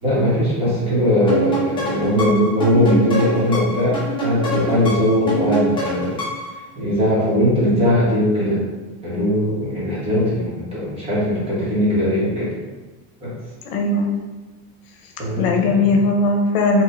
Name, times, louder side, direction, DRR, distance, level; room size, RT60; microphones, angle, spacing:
voice 1, 0.0-6.2 6.7-8.6 9.0-12.5 13.2-13.3 15.2-15.9, equal, 15° right, -8 dB, 1.2 m, -19 dB
sound 1, 1.3-6.6, right 1 dB, 15° left, 0.7 m, -25 dB
voice 2, 13.6-14.1 15.4-16.8, left 2 dB, 80° left, 1 dB, 0.8 m, -18 dB
4.6 x 2.4 x 2.6 m, 1.2 s
cardioid pair, 170°, 38 cm